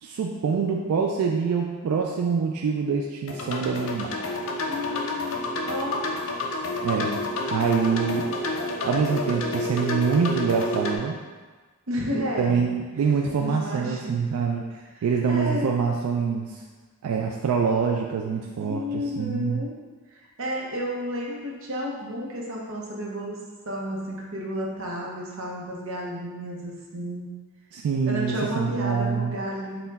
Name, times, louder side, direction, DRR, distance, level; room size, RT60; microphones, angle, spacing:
voice 1, 0.0-4.2 6.8-7.2 7.5-8.3 8.8-11.2 12.1-16.6 17.0-19.6 27.7-29.4, right 5 dB, 90° right, 1 dB, 0.3 m, -25 dB
sound 1, 3.3-11.0, left 2 dB, 60° left, 0.4 m, -29 dB
voice 2, 4.7-6.0 11.9-12.7 13.4-14.1 14.9-15.7 18.6-19.7 20.1-23.4 23.7-27.3 28.0-29.9, equal, 65° right, -3 dB, 0.7 m, -32 dB
4.2 x 2.2 x 4.0 m, 1.4 s
head